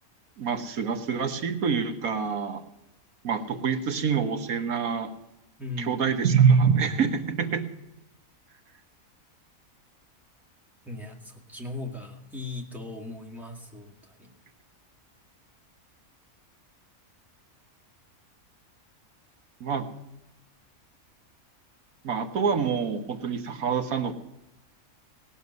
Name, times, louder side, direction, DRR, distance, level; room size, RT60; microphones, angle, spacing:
voice 1, 0.4-2.6 3.2-5.1 5.9-7.6 19.6-19.9 22.0-24.1, right 6 dB, 70° right, 6 dB, 1.6 m, -25 dB
voice 2, 5.6-6.2 10.8-14.3, left 2 dB, ahead, 0 dB, 2.0 m, -38 dB
18.0 x 7.2 x 9.5 m, 0.89 s
omnidirectional pair, 1.6 m